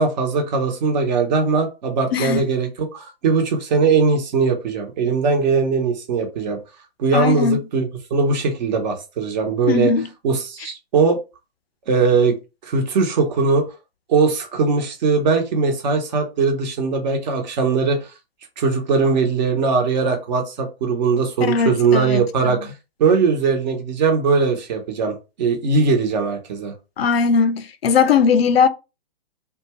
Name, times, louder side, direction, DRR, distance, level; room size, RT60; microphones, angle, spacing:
voice 1, 0.0-6.6 7.0-9.9 10.2-11.2 11.9-12.3 12.6-13.6 14.1-18.0 18.6-22.7 23.0-26.7, right 4 dB, 45° right, 0.9 m, -20 dB
voice 2, 2.1-2.5 7.1-7.6 9.7-10.1 21.5-22.6 27.0-28.7, left 6 dB, 75° left, 0.5 m, -19 dB
2.6 x 2.3 x 2.9 m
hypercardioid pair, 135°, 31 cm